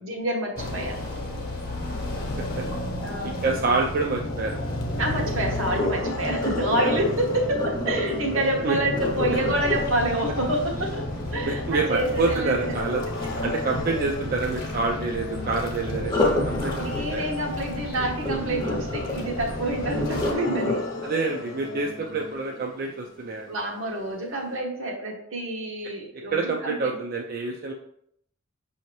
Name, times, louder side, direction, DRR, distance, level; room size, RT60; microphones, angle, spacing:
voice 1, 0.0-1.0 3.0-3.4 5.0-11.0 11.3-12.8 16.7-20.8 23.4-27.0, right 1 dB, 70° right, 0 dB, 1.0 m, -28 dB
sound 1, 0.5-20.3, left 1 dB, 50° left, 0.9 m, -33 dB
sound 2, 3.0-22.3, left 3 dB, 70° left, 0.6 m, -36 dB
voice 2, 3.2-4.6 8.6-8.8 11.5-13.0 13.4-16.8 17.1-17.3 21.0-23.5 26.3-27.7, right 3 dB, 45° right, 0 dB, 0.4 m, -27 dB
Sink (filling or washing), 5.6-11.6 16.0-23.0 23.5-23.8 24.3-24.4, left 1 dB, 20° left, 0.6 m, -30 dB
5.9 x 2.8 x 3.1 m, 0.70 s
head